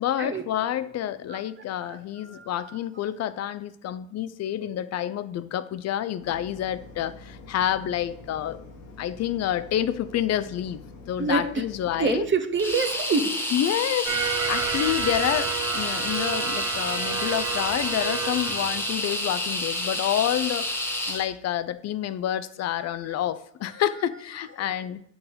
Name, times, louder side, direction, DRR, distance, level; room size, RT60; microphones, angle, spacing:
voice 1, 0.0-8.6 9.0-10.8 11.1-12.3 13.5-20.7 21.1-25.0, left 11 dB, 55° left, 15 dB, 0.5 m, -28 dB
voice 2, 1.8-2.8 11.2-11.7 12.0-13.3 22.8-22.9 23.6-24.5, right 4 dB, 35° right, 8 dB, 0.9 m, -28 dB
sound 1, 6.2-12.3, left 2 dB, 85° left, 1.4 m, -46 dB
sound 2, 12.6-21.3, left 1 dB, 5° left, 1.2 m, -29 dB
sound 3, 14.1-19.5, right 8 dB, 55° right, 0.7 m, -31 dB
7.0 x 3.9 x 5.3 m, 0.70 s
supercardioid pair, 70°, 32 cm